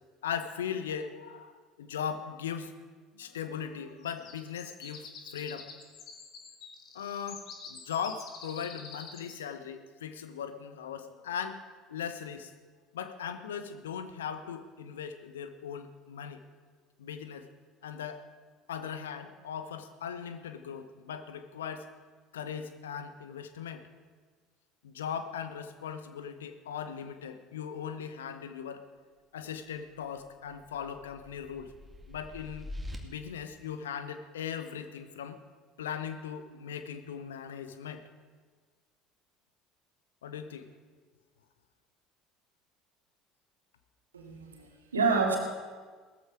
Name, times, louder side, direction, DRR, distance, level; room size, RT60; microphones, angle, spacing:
voice 1, 0.2-2.7 3.1-5.7 6.9-11.6 11.9-12.5 12.9-16.4 17.0-17.4 17.8-18.2 18.7-21.9 22.3-23.8 24.8-28.8 29.3-31.7 32.1-32.7 33.0-35.4 35.8-38.0 40.2-40.7, left 7 dB, 70° left, 10 dB, 1.0 m, -39 dB
sound 1, 4.0-9.4, left 5 dB, 45° left, 2.4 m, -47 dB
sound 2, 30.4-33.0, left 1 dB, 10° right, 2.4 m, -44 dB
voice 2, 44.1-45.4, right 4 dB, 80° right, 1 dB, 2.4 m, -28 dB
18.5 x 14.0 x 4.9 m, 1.5 s
figure-of-eight pair, 60°, 0 cm